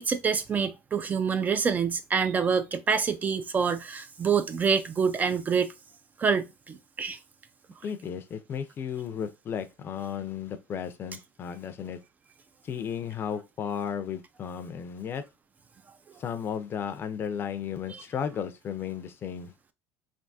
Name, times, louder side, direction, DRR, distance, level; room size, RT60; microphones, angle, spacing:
voice 1, 0.0-5.7 6.2-7.2, right 6 dB, 25° right, 0.4 m, -26 dB
voice 2, 7.8-12.0 12.6-15.2 16.2-19.5, left 8 dB, 35° left, 0.5 m, -34 dB
3.5 x 2.6 x 2.6 m
cardioid pair, 140°, 7 cm